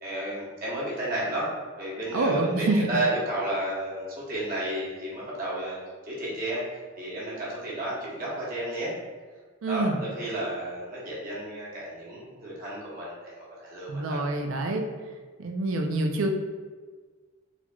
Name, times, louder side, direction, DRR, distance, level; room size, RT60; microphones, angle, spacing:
voice 1, 0.0-1.5 1.8-5.8 6.1-6.6 7.0-8.9 9.7-14.2, right 1 dB, 45° right, -6 dB, 1.0 m, -32 dB
voice 2, 2.1-2.8 9.6-10.0 13.9-14.9 15.4-16.3, right 2 dB, 70° right, 4 dB, 0.4 m, -26 dB
4.1 x 2.9 x 2.3 m, 1.5 s
head